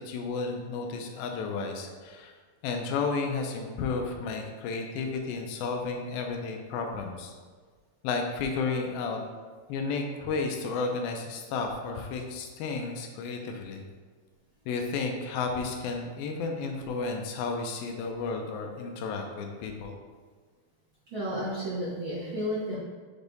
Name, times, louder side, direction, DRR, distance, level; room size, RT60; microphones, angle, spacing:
voice 1, 0.1-2.3 2.6-7.3 8.0-9.2 9.7-13.8 14.7-20.0, left 4 dB, 85° left, 3 dB, 2.5 m, -32 dB
voice 2, 21.1-22.8, equal, 40° right, -11 dB, 2.1 m, -32 dB
7.1 x 3.5 x 4.0 m, 1.5 s
omnidirectional pair, 4.2 m